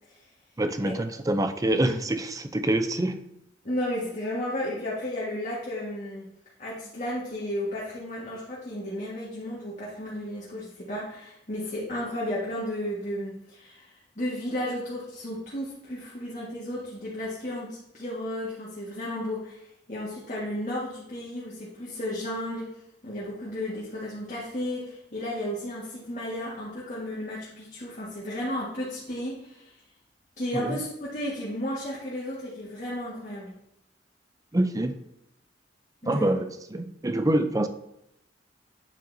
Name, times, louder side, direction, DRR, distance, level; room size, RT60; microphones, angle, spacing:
voice 1, 0.6-3.2 30.5-30.8 34.5-35.0 36.0-37.7, right 1 dB, 20° right, 9 dB, 0.5 m, -26 dB
voice 2, 3.6-6.2 6.6-22.7 23.0-29.7 30.4-33.5 36.0-36.4, left 1 dB, 40° left, -7 dB, 1.7 m, -33 dB
9.4 x 7.7 x 2.7 m, 0.84 s
head